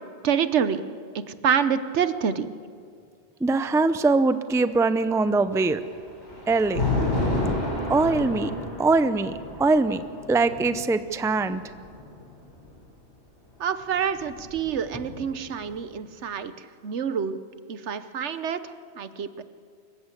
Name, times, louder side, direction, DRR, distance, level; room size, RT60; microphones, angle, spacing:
voice 1, 0.2-0.8 1.4-2.5 13.6-16.5 16.8-17.4 17.7-18.6 19.0-19.4, right 7 dB, 80° right, 12 dB, 1.2 m, -26 dB
voice 2, 3.4-5.8 6.5-6.8 7.9-8.5 8.8-10.0 10.3-11.6, right 3 dB, 5° right, 11 dB, 0.4 m, -22 dB
Thunder, 5.5-12.7 13.8-15.5, left 2 dB, 70° left, 7.3 m, -31 dB
25.5 x 15.0 x 8.3 m, 2.2 s
omnidirectional pair, 1.2 m